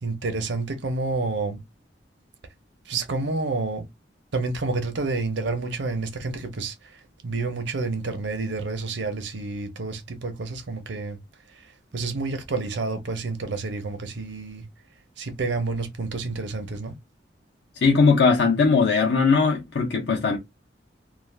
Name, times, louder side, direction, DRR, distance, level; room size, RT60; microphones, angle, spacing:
voice 1, 0.0-1.6 2.9-3.9 4.3-11.2 11.5-14.6 15.2-17.0, right 3 dB, 80° right, 0.7 m, -29 dB
voice 2, 17.8-20.4, left 4 dB, 70° left, 0.7 m, -19 dB
2.5 x 2.3 x 3.2 m
head